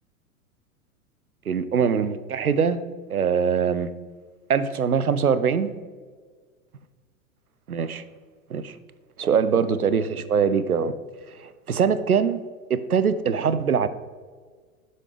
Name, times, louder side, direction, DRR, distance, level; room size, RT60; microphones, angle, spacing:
voice 1, 1.5-2.8 3.1-3.9 4.5-5.7 7.7-8.0 8.5-8.8 9.2-10.9 11.4-12.4 12.7-13.9, right 6 dB, 90° right, 13 dB, 0.5 m, -22 dB
7.7 x 5.6 x 3.3 m, 1.5 s
figure-of-eight pair, 95°, 43 cm